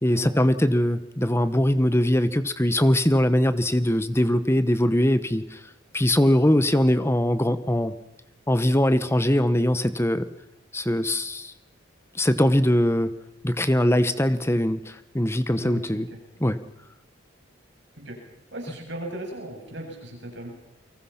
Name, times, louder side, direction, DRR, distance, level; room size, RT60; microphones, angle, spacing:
voice 1, 0.0-5.6 5.9-7.9 8.5-10.3 10.7-11.5 12.1-13.1 13.4-16.1 16.4-16.6, left 1 dB, 15° left, 12 dB, 1.1 m, -21 dB
voice 2, 15.6-16.0 18.0-18.2 18.5-20.5, right 1 dB, 65° right, 2 dB, 7.5 m, -36 dB
29.0 x 24.5 x 5.8 m, 0.92 s
head